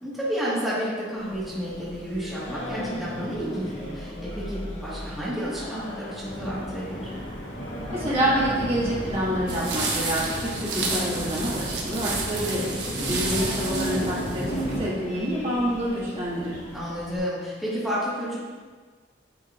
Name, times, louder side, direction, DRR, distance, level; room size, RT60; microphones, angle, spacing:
voice 1, 0.0-7.1 12.9-13.4 16.7-18.4, equal, ahead, -10 dB, 1.6 m, -31 dB
Singing, 1.2-17.2, left 1 dB, 35° left, 1.6 m, -38 dB
sound 1, 6.2-14.8, equal, 90° left, 1.1 m, -34 dB
voice 2, 7.9-16.6, equal, 35° right, -8 dB, 1.8 m, -27 dB
sound 2, 9.5-14.8, right 4 dB, 75° right, 1.1 m, -31 dB
9.0 x 4.4 x 2.5 m, 1.5 s
head